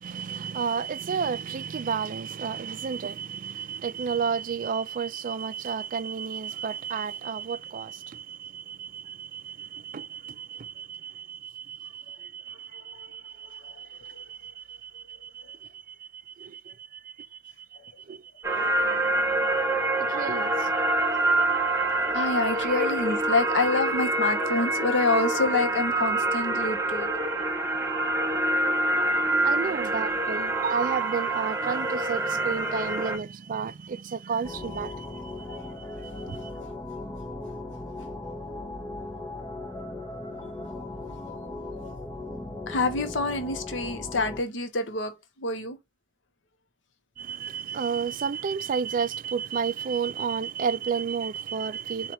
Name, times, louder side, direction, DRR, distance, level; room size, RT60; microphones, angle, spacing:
voice 1, 0.0-17.7 18.0-18.2 19.9-20.7 22.5-22.9 29.4-35.6 36.0-36.5 47.2-52.1, right 6 dB, 50° right, 0.4 m, -32 dB
sound 1, 18.4-33.2, right 2 dB, 15° right, 0.8 m, -26 dB
voice 2, 22.1-27.1 41.7-41.8 42.7-45.8, left 3 dB, 75° left, 0.8 m, -27 dB
sound 2, 34.4-44.4, left 2 dB, 20° left, 0.7 m, -38 dB
4.6 x 2.4 x 4.1 m
head